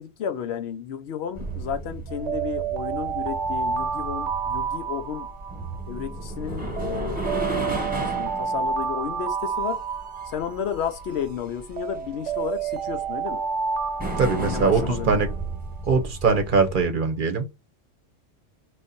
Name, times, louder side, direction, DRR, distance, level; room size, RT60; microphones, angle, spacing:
voice 1, 0.0-5.3 5.8-7.2 7.9-9.8 10.3-13.4 14.4-15.3, left 8 dB, 70° left, 0.8 m, -32 dB
sound 1, 1.3-16.8, right 2 dB, 5° right, 1.2 m, -34 dB
Alarm, 2.1-6.2 6.8-11.2 11.8-15.6, right 6 dB, 75° right, 0.9 m, -30 dB
voice 2, 14.2-15.3 15.8-17.5, right 4 dB, 50° right, 0.9 m, -22 dB
4.0 x 3.2 x 4.1 m
omnidirectional pair, 1.2 m